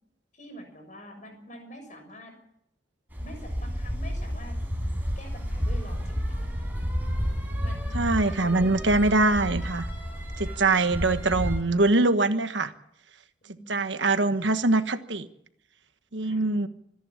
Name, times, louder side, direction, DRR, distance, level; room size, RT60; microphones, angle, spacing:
voice 1, 0.3-2.4 3.2-4.6 5.1-6.6 7.6-9.5 10.4-10.7 13.4-13.9 16.2-16.5, equal, 40° left, 5 dB, 6.7 m, -46 dB
sound 1, 3.1-11.6, equal, 10° right, 5.1 m, -31 dB
voice 2, 7.9-9.9 10.4-12.7 13.7-15.3 16.1-16.7, right 2 dB, 75° right, 10 dB, 1.4 m, -23 dB
26.0 x 11.0 x 9.9 m, 0.75 s
head